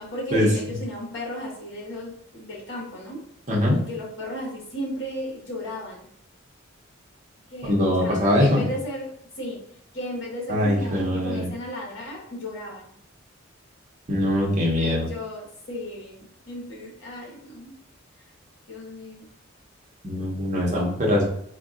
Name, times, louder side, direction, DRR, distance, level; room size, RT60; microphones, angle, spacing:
voice 1, 0.0-3.2 3.7-6.1 7.5-9.1 9.4-9.6 9.9-12.9 14.6-17.7 18.7-19.3, left 1 dB, 65° left, -3 dB, 1.0 m, -35 dB
voice 2, 7.6-8.6 10.5-11.5 14.1-15.1 20.0-21.2, left 1 dB, 35° right, -3 dB, 0.8 m, -22 dB
3.7 x 2.3 x 2.4 m, 0.70 s
head